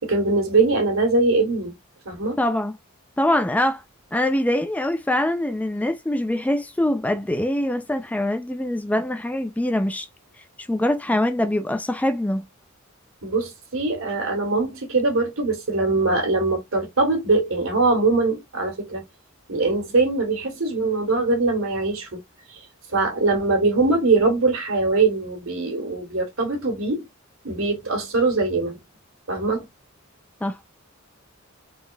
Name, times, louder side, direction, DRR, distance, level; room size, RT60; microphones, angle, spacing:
voice 1, 0.0-1.8 2.0-2.4 13.2-19.0 19.5-22.2 22.9-27.1 27.4-28.8 29.3-29.6, right 3 dB, 70° right, 1.8 m, -22 dB
voice 2, 2.4-2.8 3.2-3.8 4.1-10.1 10.6-12.4 30.4-30.6, left 1 dB, 5° left, 0.3 m, -23 dB
3.9 x 3.2 x 2.4 m
head